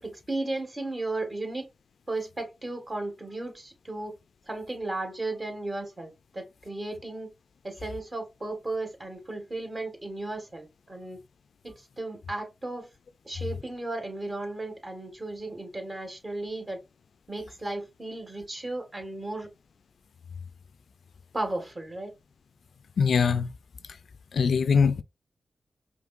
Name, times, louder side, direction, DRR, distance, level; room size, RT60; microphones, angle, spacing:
voice 1, 0.0-1.7 2.1-4.1 4.5-7.3 7.6-11.2 11.6-12.9 13.3-16.8 17.3-19.5 21.3-22.1, right 2 dB, 40° right, 1.8 m, -35 dB
voice 2, 23.0-23.5 24.3-25.0, left 6 dB, 80° left, 0.3 m, -22 dB
5.0 x 3.2 x 2.5 m
cardioid pair, 45°, 0 cm